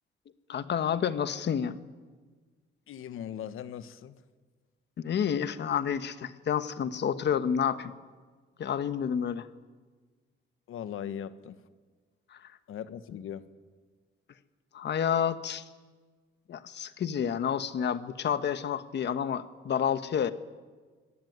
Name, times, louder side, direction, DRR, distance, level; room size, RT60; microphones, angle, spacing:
voice 1, 0.5-1.8 5.0-7.9 8.6-9.5 14.7-15.6 16.5-20.3, left 8 dB, 55° left, 12 dB, 1.3 m, -29 dB
voice 2, 2.9-4.2 10.7-11.6 12.7-13.5, left 9 dB, 85° left, 13 dB, 1.3 m, -39 dB
24.0 x 19.0 x 9.5 m, 1.4 s
cardioid pair, 140°, 21 cm